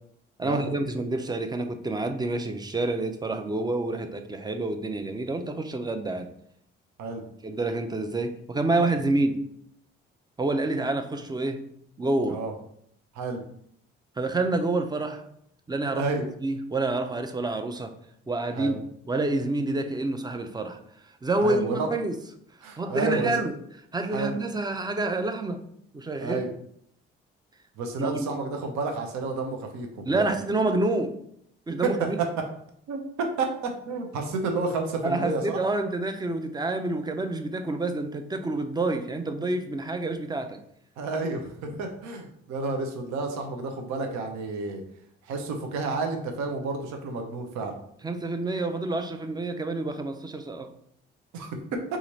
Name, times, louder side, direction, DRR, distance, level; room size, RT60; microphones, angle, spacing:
voice 1, 0.4-6.3 7.4-9.4 10.4-11.7 12.0-12.4 14.2-15.2 15.7-16.0 16.4-17.9 18.3-18.8 19.1-20.8 21.2-22.2 22.8-23.5 23.9-25.6 25.9-26.4 28.0-28.3 30.0-31.2 31.7-32.2 35.0-40.6 48.0-50.7, right 2 dB, 15° right, 7 dB, 0.5 m, -28 dB
voice 2, 15.9-16.3 18.6-18.8 21.4-21.9 22.6-23.5 24.1-24.4 26.2-26.5 27.8-30.3 31.8-32.1 32.9-35.6 41.0-44.8 45.2-47.8 51.3-51.8, right 3 dB, 70° right, 4 dB, 0.7 m, -30 dB
2.9 x 2.4 x 4.0 m, 0.69 s
hypercardioid pair, 50°, 29 cm